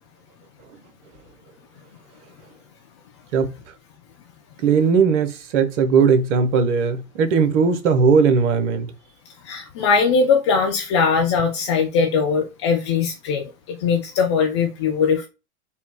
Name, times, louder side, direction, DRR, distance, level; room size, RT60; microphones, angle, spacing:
voice 1, 4.6-8.9, right 5 dB, 50° right, 0.9 m, -18 dB
voice 2, 9.4-15.3, left 5 dB, 20° left, 0.3 m, -20 dB
4.4 x 2.2 x 3.4 m
figure-of-eight pair, 100°, 44 cm